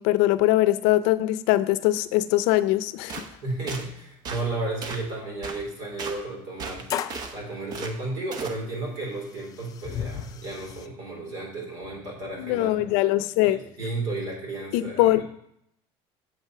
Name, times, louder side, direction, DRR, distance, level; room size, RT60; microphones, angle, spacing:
voice 1, 0.0-3.2 12.4-13.6 14.7-15.2, left 16 dB, 90° left, 14 dB, 0.5 m, -22 dB
sound 1, 2.6-2.7 3.0-3.1 3.8-3.9 6.0-6.1 6.9-7.3 8.5-8.6 9.1-10.9, left 9 dB, 30° left, 0.3 m, -34 dB
sound 2, 3.1-3.3 3.7-3.8 4.2-4.4 4.8-5.1 5.4-5.6 6.0-6.2 6.6-7.3 7.7-7.9 8.3-8.6, right 4 dB, 35° right, 0.8 m, -35 dB
voice 2, 3.4-6.8 7.3-12.9 13.4-15.2, right 2 dB, 60° right, -2 dB, 3.9 m, -33 dB
7.6 x 5.6 x 5.9 m, 0.74 s
cardioid pair, 175°, 11 cm